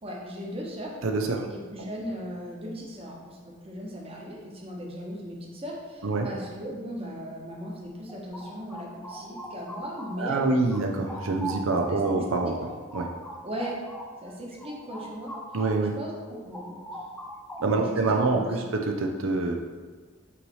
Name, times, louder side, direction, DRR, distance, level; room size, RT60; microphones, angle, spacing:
voice 1, 0.0-1.0 1.5-10.6 11.9-12.2 12.4-12.5 13.4-13.8 14.2-15.3 16.0-16.1 16.4-16.9 17.7-18.5, equal, 30° right, -2 dB, 1.0 m, -38 dB
voice 2, 1.0-1.5 6.0-6.3 10.2-13.1 15.5-16.0 17.6-19.5, right 3 dB, 85° right, 2 dB, 0.6 m, -26 dB
sound 1, 7.8-10.4 10.7-15.9 16.2-18.0, right 1 dB, 5° left, 0.4 m, -41 dB
5.6 x 3.2 x 5.5 m, 1.5 s
head